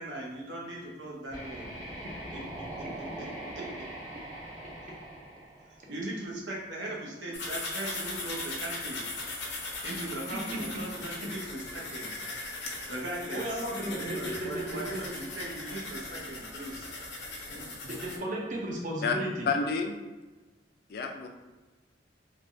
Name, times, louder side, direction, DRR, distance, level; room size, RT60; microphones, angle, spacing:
voice 1, 0.0-1.7 2.3-3.3 3.6-3.7 5.9-9.1 9.8-12.1 12.9-16.9, right 1 dB, 85° right, -3 dB, 0.8 m, -39 dB
sound 1, 1.3-6.2, right 1 dB, 20° right, 0.9 m, -42 dB
sound 2, 7.3-18.2, left 2 dB, 85° left, 0.7 m, -39 dB
voice 2, 13.3-15.0 17.8-19.5, right 1 dB, 45° right, -2 dB, 0.6 m, -34 dB
voice 3, 19.5-20.0 20.9-21.3, left 5 dB, 55° left, 4 dB, 0.3 m, -29 dB
3.2 x 2.2 x 2.6 m, 1.2 s
head